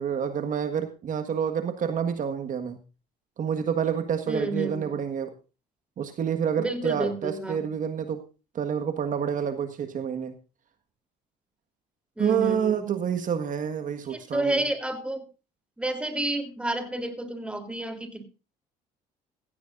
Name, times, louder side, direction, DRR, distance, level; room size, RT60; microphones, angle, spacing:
voice 1, 0.0-2.8 3.4-5.4 6.0-8.3 8.5-10.3 12.2-14.6, right 7 dB, 50° right, 8 dB, 1.6 m, -28 dB
voice 2, 4.3-5.0 6.6-7.7 12.2-12.8 14.1-15.3 15.8-18.2, right 2 dB, 5° right, 7 dB, 3.3 m, -30 dB
16.5 x 15.5 x 2.6 m, 0.33 s
cardioid pair, 110°, 17 cm